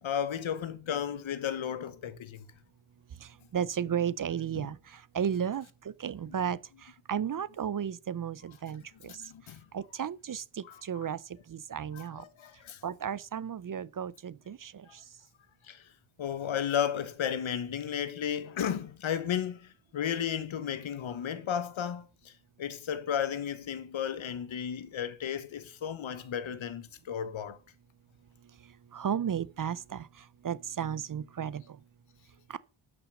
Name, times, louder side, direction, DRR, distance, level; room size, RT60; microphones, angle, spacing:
voice 1, 0.0-2.5 4.5-4.7 6.3-6.4 9.0-9.7 10.6-11.1 11.9-12.8 14.9-15.0 15.6-15.9 16.2-22.3 22.6-27.6, left 8 dB, 70° left, 1.2 m, -34 dB
voice 2, 3.2-9.3 9.7-12.3 12.8-15.1 28.4-31.8 32.5-32.6, right 8 dB, 40° right, 0.6 m, -34 dB
11.0 x 6.1 x 6.4 m
cardioid pair, 85°, 50 cm